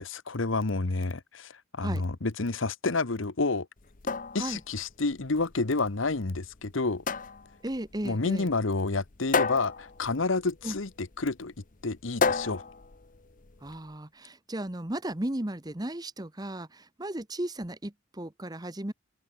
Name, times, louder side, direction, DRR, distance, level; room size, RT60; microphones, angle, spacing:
voice 1, 0.0-3.7 4.3-7.0 8.0-11.5 11.8-12.6, left 3 dB, 85° left, 1.2 m, -29 dB
sound 1, 3.8-13.8, left 4 dB, 40° left, 0.9 m, -33 dB
voice 2, 7.6-8.5 10.6-10.7 13.6-18.9, right 1 dB, 20° right, 1.2 m, -35 dB
open air
head